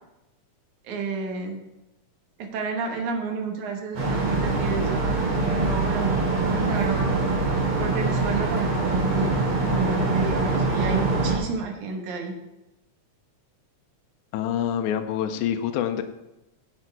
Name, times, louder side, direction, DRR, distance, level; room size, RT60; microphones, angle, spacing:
voice 1, 0.8-1.6 2.4-9.4 9.6-12.3, right 5 dB, 75° right, 3 dB, 2.6 m, -31 dB
sound 1, 3.9-11.4, right 3 dB, 60° right, 3.8 m, -24 dB
voice 2, 14.3-16.0, left 9 dB, 80° left, 7 dB, 2.0 m, -26 dB
10.5 x 6.8 x 4.7 m, 0.96 s
omnidirectional pair, 3.5 m